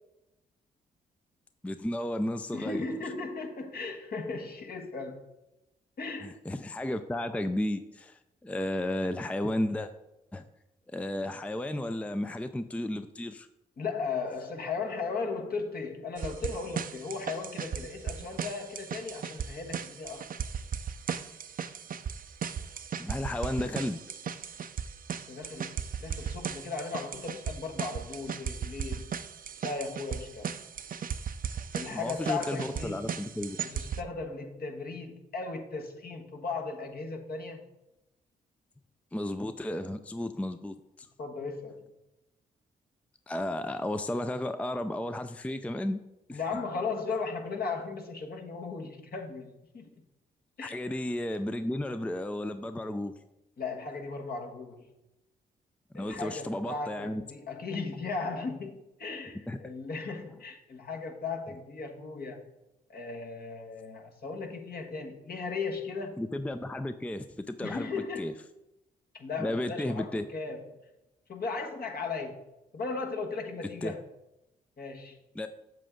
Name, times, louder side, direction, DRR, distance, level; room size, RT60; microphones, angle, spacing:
voice 1, 1.6-2.8 6.2-9.9 10.3-10.4 10.9-13.5 23.0-24.0 31.9-33.6 39.1-41.1 43.3-46.0 46.3-46.4 50.6-53.1 55.9-57.2 59.5-59.6 66.2-67.9 68.2-68.3 69.4-70.2 73.8-73.9 75.4-75.5, left 1 dB, 5° left, 0.4 m, -33 dB
voice 2, 2.5-5.2 6.0-6.4 13.8-20.3 25.1-29.1 29.6-30.5 31.7-33.1 33.6-37.6 41.2-41.9 46.3-49.9 50.6-50.8 53.6-54.9 55.9-62.5 62.9-66.2 67.6-68.4 69.1-70.8 71.3-72.4 72.7-74.0 74.8-75.2, left 4 dB, 55° left, 1.4 m, -36 dB
sound 1, 16.2-34.0, right 7 dB, 45° right, 0.5 m, -37 dB
7.5 x 6.7 x 3.8 m
supercardioid pair, 50°, 19 cm